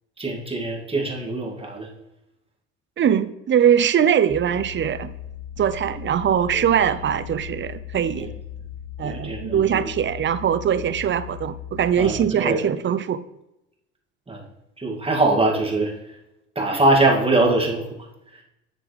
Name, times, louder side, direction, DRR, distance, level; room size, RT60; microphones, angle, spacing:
voice 1, 0.2-1.9 6.5-6.6 8.2-8.3 9.0-9.9 12.0-12.6 14.3-14.4 14.8-15.9 16.6-18.0, right 2 dB, 15° right, -1 dB, 2.4 m, -22 dB
voice 2, 3.0-5.1 5.6-8.3 9.0-13.2, right 9 dB, 35° right, 13 dB, 0.7 m, -21 dB
sound 1, 4.3-12.2, left 10 dB, 20° left, 2.9 m, -38 dB
10.0 x 7.0 x 3.4 m, 0.88 s
hypercardioid pair, 65°, 34 cm